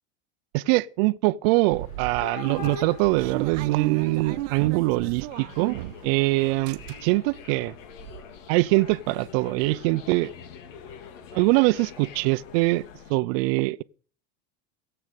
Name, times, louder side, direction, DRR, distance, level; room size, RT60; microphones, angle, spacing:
voice 1, 0.5-5.8 6.0-7.7 8.5-10.3 11.3-12.8 13.1-13.8, right 22 dB, 50° right, 0.6 m, -23 dB
sound 1, 1.7-13.1, left 7 dB, 85° left, 2.1 m, -44 dB
sound 2, 1.7-6.2 6.5-7.3 7.7-7.8 8.0-8.2, right 17 dB, 85° right, 0.9 m, -35 dB
17.0 x 8.0 x 8.1 m
supercardioid pair, 160°, 38 cm